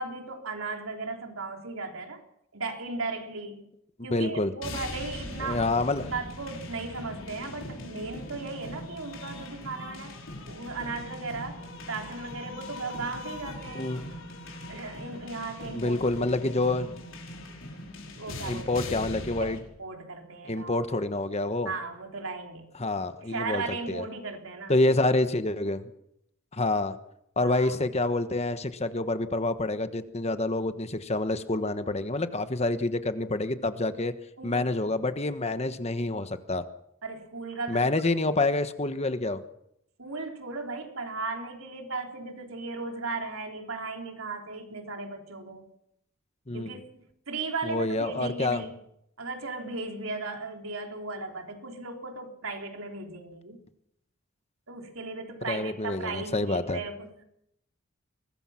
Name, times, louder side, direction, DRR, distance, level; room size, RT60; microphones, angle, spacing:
voice 1, 0.0-2.2 2.5-3.7 4.0-5.7 6.0-10.2 10.5-13.9 14.7-16.1 18.1-18.8 19.4-20.9 21.7-22.7 23.2-24.8 27.4-27.7 34.4-34.9 37.0-37.8 40.0-45.7 46.5-48.7 49.2-53.6 54.7-57.2, right 3 dB, 75° right, 3 dB, 3.7 m, -36 dB
voice 2, 4.1-4.5 5.4-6.1 13.7-14.0 15.7-17.0 18.4-19.6 20.5-21.7 22.8-24.0 24.7-25.9 26.5-27.0 27.4-34.1 34.4-36.6 37.7-39.4 46.5-46.7 47.6-48.6 55.5-56.8, left 2 dB, 30° left, 10 dB, 1.2 m, -27 dB
sound 1, 4.6-19.6, left 1 dB, 65° left, 5.3 m, -40 dB
23.0 x 20.5 x 5.9 m, 0.77 s
head